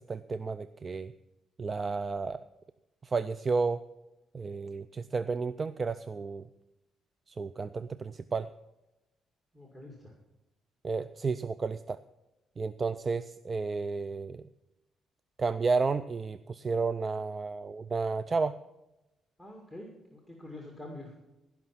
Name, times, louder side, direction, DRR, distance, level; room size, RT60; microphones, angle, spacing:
voice 1, 0.1-1.1 1.6-2.4 3.0-3.8 4.3-6.4 7.3-8.5 10.8-12.0 12.6-14.4 15.4-18.5, right 4 dB, 35° right, 14 dB, 0.4 m, -32 dB
voice 2, 9.5-10.1 19.4-21.4, left 1 dB, 5° right, 0 dB, 2.1 m, -46 dB
17.5 x 5.9 x 5.9 m, 0.96 s
cardioid pair, 90°, 0 cm